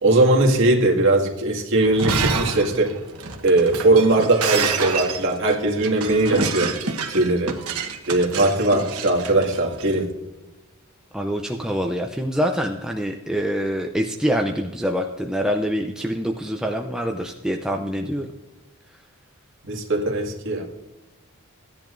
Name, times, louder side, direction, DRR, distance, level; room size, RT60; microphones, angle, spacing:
voice 1, 0.0-2.9 3.4-6.8 7.1-7.5 8.1-10.1 19.6-20.7, right 2 dB, 60° right, 0 dB, 2.0 m, -19 dB
Shatter, 1.9-9.9, right 5 dB, 85° right, 1.2 m, -28 dB
voice 2, 11.1-18.3, equal, 5° right, 2 dB, 0.5 m, -25 dB
16.0 x 10.5 x 2.6 m, 1.1 s
head